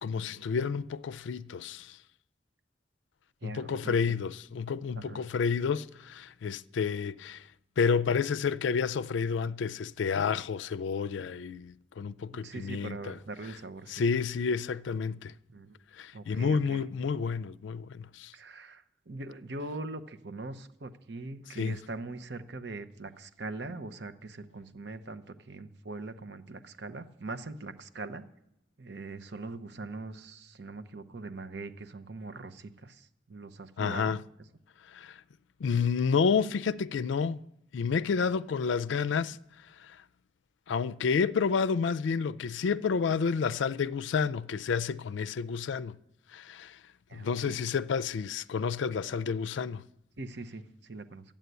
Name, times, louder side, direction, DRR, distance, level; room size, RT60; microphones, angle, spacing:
voice 1, 0.0-2.0 3.4-7.5 7.8-13.2 13.9-15.3 15.9-18.3 21.5-21.8 33.8-34.2 34.9-35.2 35.6-37.4 37.7-39.4 39.8-40.0 40.7-46.0 46.3-46.8 47.1-49.8, left 5 dB, 80° left, 0.4 m, -30 dB
voice 2, 3.4-4.2 5.0-5.2 12.4-14.0 15.5-15.8 16.1-16.8 18.3-28.2 28.8-34.1 47.1-47.6 50.2-51.2, right 2 dB, 65° right, 0.8 m, -42 dB
12.5 x 8.8 x 8.0 m
head